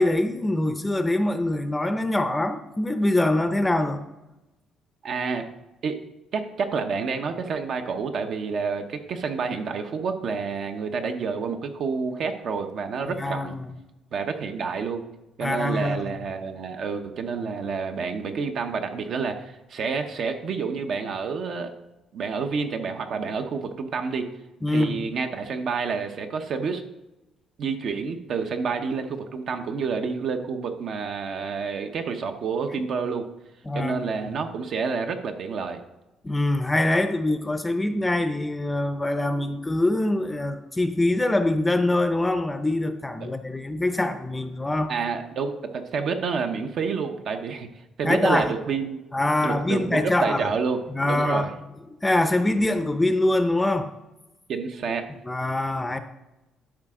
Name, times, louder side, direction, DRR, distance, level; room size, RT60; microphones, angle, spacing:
voice 1, 0.0-4.0 13.1-13.7 15.4-16.1 24.6-25.1 33.7-34.4 36.2-44.9 48.0-48.5 49.1-50.4 50.9-51.5 52.0-53.9 55.2-56.0, left 1 dB, 10° left, 9 dB, 0.6 m, -24 dB
voice 2, 5.0-5.5 5.8-6.0 6.3-13.6 14.1-15.0 15.4-21.7 22.1-24.3 24.7-26.8 27.6-33.3 33.7-35.8 43.2-43.3 44.9-47.7 48.0-49.0 49.4-50.8 51.1-51.5 54.5-55.1, right 5 dB, 60° right, 6 dB, 0.9 m, -29 dB
12.0 x 5.0 x 3.7 m, 0.98 s
cardioid pair, 115°, 0 cm